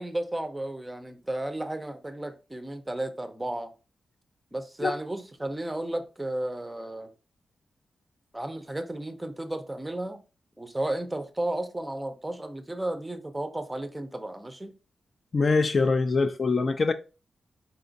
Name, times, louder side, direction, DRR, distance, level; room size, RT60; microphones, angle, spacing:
voice 1, 0.0-3.7 4.5-7.1 8.3-10.2 10.6-14.7, right 1 dB, 10° right, 0.5 m, -33 dB
voice 2, 15.3-16.9, left 4 dB, 35° left, 0.3 m, -23 dB
4.3 x 2.4 x 3.9 m
wide cardioid pair, 150°, 0 cm